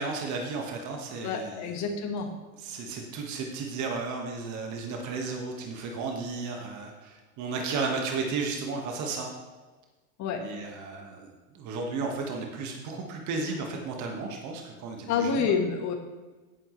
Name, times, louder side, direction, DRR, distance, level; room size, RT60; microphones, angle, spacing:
voice 1, 0.0-1.8 2.6-9.3 10.4-15.5, right 4 dB, 45° right, 2 dB, 1.7 m, -34 dB
voice 2, 1.2-2.3 10.2-10.4 15.1-15.9, left 6 dB, 40° left, 4 dB, 1.6 m, -28 dB
10.0 x 9.3 x 3.3 m, 1.3 s
hypercardioid pair, 110°, 41 cm